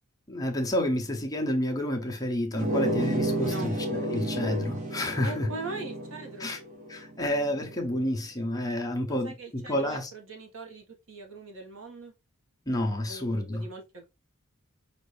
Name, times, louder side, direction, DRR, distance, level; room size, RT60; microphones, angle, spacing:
voice 1, 0.3-5.5 6.4-6.6 6.9-10.1 12.7-13.7, left 1 dB, 15° left, 0.8 m, -29 dB
sound 1, 2.5-7.8, right 1 dB, 35° right, 0.9 m, -32 dB
voice 2, 3.4-3.7 5.2-6.5 9.1-12.1 13.1-14.1, right 3 dB, 65° right, 1.2 m, -41 dB
5.2 x 2.6 x 3.2 m
head